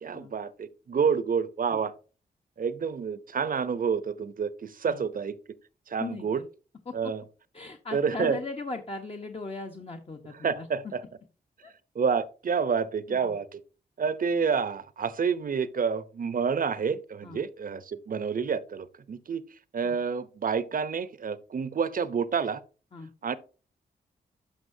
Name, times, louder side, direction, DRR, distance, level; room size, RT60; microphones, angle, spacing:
voice 1, 0.0-1.9 2.6-5.4 5.9-6.4 6.9-7.2 7.9-8.4 10.3-11.0 11.9-13.6 14.0-19.4 19.7-22.6 23.2-23.4, right 6 dB, 55° right, 0.7 m, -28 dB
voice 2, 6.0-6.4 6.9-7.0 7.5-10.7 11.6-11.7 13.1-13.3 17.2-17.4 19.8-20.0 22.9-23.1, left 3 dB, 35° left, 1.1 m, -38 dB
11.5 x 5.7 x 2.7 m
cardioid pair, 60°, 17 cm